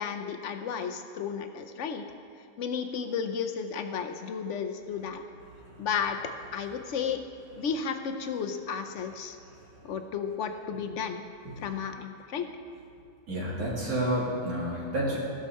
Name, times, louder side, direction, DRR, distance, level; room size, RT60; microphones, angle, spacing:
voice 1, 0.0-2.0 2.6-5.2 5.8-6.2 6.5-7.2 7.5-9.4 9.8-11.2 11.6-12.5, left 6 dB, 65° left, 7 dB, 0.7 m, -33 dB
voice 2, 13.3-15.2, right 1 dB, 60° right, -5 dB, 2.6 m, -29 dB
16.0 x 6.4 x 4.2 m, 2.5 s
omnidirectional pair, 1.8 m